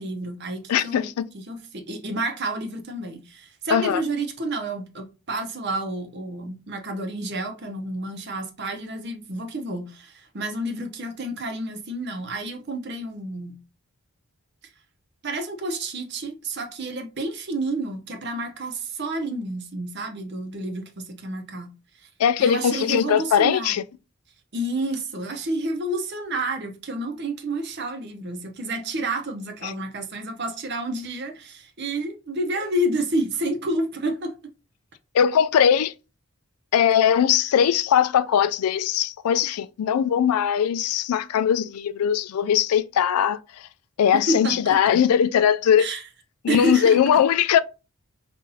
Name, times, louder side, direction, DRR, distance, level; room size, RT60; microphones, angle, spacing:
voice 1, 0.0-13.6 15.2-21.7 22.0-22.1 22.4-23.8 24.5-34.3 44.1-45.0 45.8-46.0 46.5-47.0, right 1 dB, 50° right, 0.8 m, -30 dB
voice 2, 0.7-1.2 3.7-4.0 22.2-23.8 29.6-29.7 35.1-35.9 36.7-43.4 44.0-45.9 46.4-47.6, left 8 dB, 80° left, 0.3 m, -20 dB
5.5 x 2.5 x 2.7 m
head